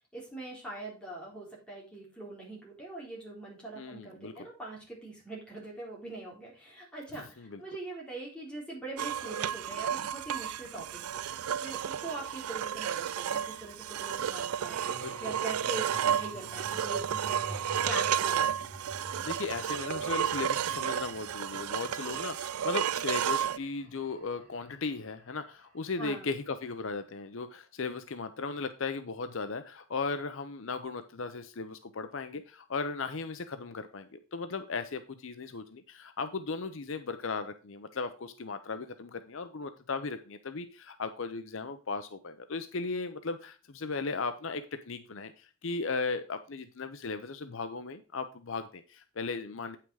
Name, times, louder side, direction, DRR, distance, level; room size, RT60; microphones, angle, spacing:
voice 1, 0.1-18.6 26.0-26.3, right 2 dB, 5° left, -5 dB, 3.7 m, -42 dB
voice 2, 3.8-4.5 7.4-7.6 14.9-15.2 19.2-49.8, left 4 dB, 60° left, 9 dB, 0.6 m, -37 dB
sound 1, 9.0-23.6, right 9 dB, 80° right, 0.4 m, -32 dB
sound 2, 14.1-26.3, right 1 dB, 35° right, 2.7 m, -50 dB
8.7 x 5.9 x 4.7 m, 0.35 s
head